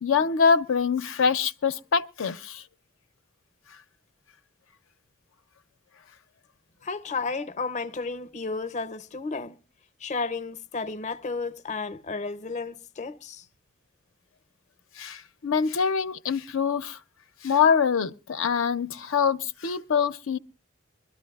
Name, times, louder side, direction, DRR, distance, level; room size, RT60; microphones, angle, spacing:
voice 1, 0.0-2.6 15.0-17.0 17.4-20.4, left 6 dB, 80° left, 0.5 m, -24 dB
voice 2, 6.8-9.6 10.0-13.4, left 4 dB, 35° left, 0.6 m, -32 dB
23.0 x 13.0 x 2.3 m
head